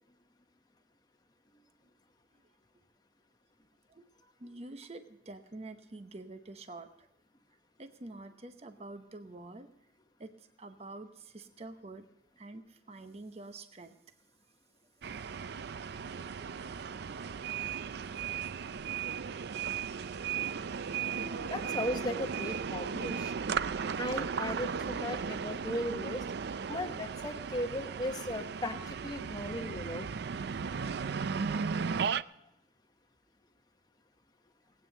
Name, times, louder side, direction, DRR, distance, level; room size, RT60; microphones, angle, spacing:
voice 1, 4.4-7.1 7.8-9.7 10.2-10.3 10.6-12.0 12.4-13.9, right 2 dB, 35° right, 8 dB, 0.8 m, -47 dB
sound 1, 15.0-32.2, right 6 dB, 60° right, 0.4 m, -36 dB
voice 2, 21.0-23.5 24.0-26.2 26.7-28.8 29.0-30.1, left 1 dB, 20° left, 5 dB, 0.9 m, -37 dB
18.5 x 9.1 x 6.5 m, 0.82 s
head